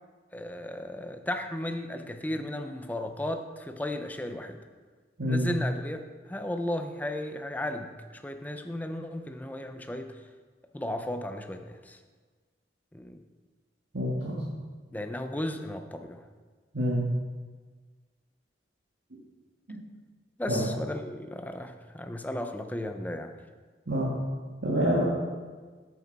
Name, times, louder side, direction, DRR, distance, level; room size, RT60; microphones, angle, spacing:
voice 1, 0.3-4.6 5.3-10.2 10.7-12.0 12.9-13.2 14.9-16.2 20.4-23.4, left 1 dB, 10° left, 7 dB, 0.5 m, -35 dB
voice 2, 13.9-14.4 16.7-17.0 19.1-19.2 19.7-19.8 20.5-20.6 23.9-24.1 24.6-25.0, equal, 70° right, -5 dB, 1.5 m, -27 dB
8.0 x 7.1 x 4.6 m, 1.5 s
head